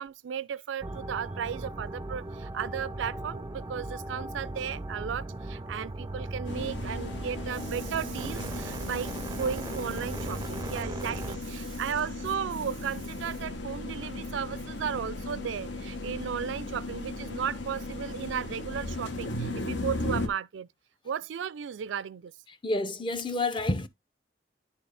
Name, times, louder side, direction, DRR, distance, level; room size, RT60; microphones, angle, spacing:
voice 1, 0.0-20.7 21.0-22.3, right 7 dB, 85° right, 0.4 m, -35 dB
sound 1, 0.8-11.4, right 2 dB, 20° right, 0.4 m, -38 dB
sound 2, 6.4-20.3, left 2 dB, 75° left, 1.1 m, -36 dB
voice 2, 22.6-23.9, left 2 dB, 25° left, 0.6 m, -29 dB
10.0 x 4.3 x 3.3 m
head